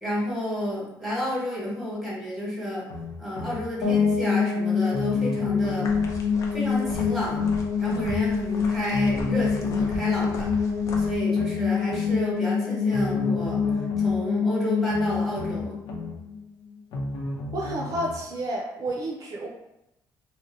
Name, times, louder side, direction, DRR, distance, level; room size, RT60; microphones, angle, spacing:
voice 1, 0.0-2.8 3.2-5.9 6.5-7.4 7.8-10.5 11.0-13.6 14.0-15.8, equal, ahead, -6 dB, 1.1 m, -30 dB
sound 1, 2.9-4.1 4.9-6.2 6.9-8.1 8.9-10.2 10.9-12.1 12.9-14.2 14.9-16.1 16.9-18.2 18.9-19.0, left 2 dB, 90° left, 0.7 m, -34 dB
sound 2, 3.8-16.7, left 6 dB, 70° left, 1.3 m, -25 dB
sound 3, 5.8-11.2, left 1 dB, 45° left, 0.5 m, -38 dB
voice 2, 17.5-19.5, right 1 dB, 50° right, -1 dB, 0.5 m, -30 dB
2.7 x 2.1 x 3.6 m, 0.88 s
cardioid pair, 150°, 8 cm